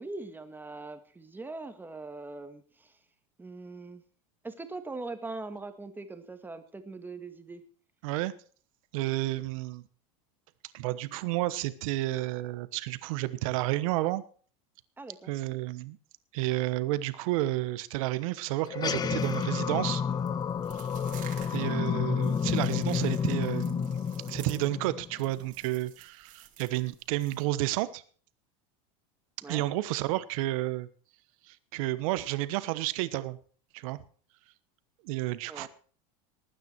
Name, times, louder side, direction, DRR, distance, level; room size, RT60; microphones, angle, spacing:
voice 1, 0.0-2.9 3.4-4.0 4.4-7.6 15.0-15.3 29.4-29.6 35.5-35.7, right 3 dB, 10° right, 8 dB, 1.8 m, -41 dB
voice 2, 8.0-8.3 8.9-9.8 10.7-14.2 15.3-16.0 16.3-20.0 20.7-20.8 21.5-28.0 29.5-30.9 31.5-33.4 33.7-34.0 35.0-35.7, right 17 dB, 70° right, 14 dB, 1.1 m, -31 dB
sound 1, 18.7-25.4, left 7 dB, 25° left, 0.6 m, -30 dB
sound 2, 19.0-27.4, right 11 dB, 45° right, 2.5 m, -52 dB
19.0 x 9.4 x 4.6 m, 0.43 s
supercardioid pair, 115°, 18 cm